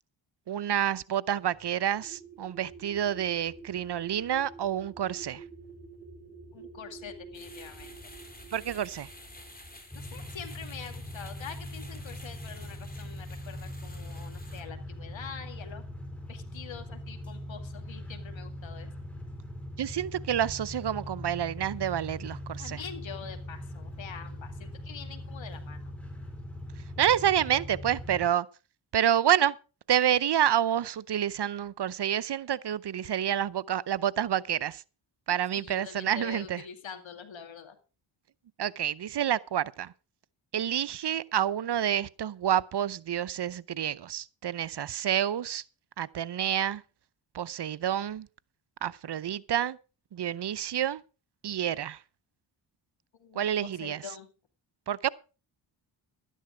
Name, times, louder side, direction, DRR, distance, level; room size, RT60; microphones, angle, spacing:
voice 1, 0.5-5.4 8.5-9.1 19.8-22.8 27.0-28.5 28.9-29.5 29.9-34.8 35.3-36.6 38.6-39.9 40.5-45.6 46.0-46.8 47.3-48.3 48.8-49.8 50.1-51.0 51.4-52.0 53.3-54.0 54.9-55.1, right 10 dB, 55° right, 0.7 m, -28 dB
sound 1, 1.5-9.8, right 4 dB, 20° right, 4.6 m, -49 dB
voice 2, 6.5-8.1 9.9-15.8 16.3-18.9 22.6-25.8 35.6-37.8 53.2-54.3, left 7 dB, 65° left, 2.2 m, -45 dB
sound 2, 7.3-14.6, left 1 dB, 20° left, 4.8 m, -50 dB
sound 3, 9.9-28.3, left 1 dB, ahead, 5.4 m, -41 dB
12.5 x 10.0 x 5.0 m
supercardioid pair, 45°, 49 cm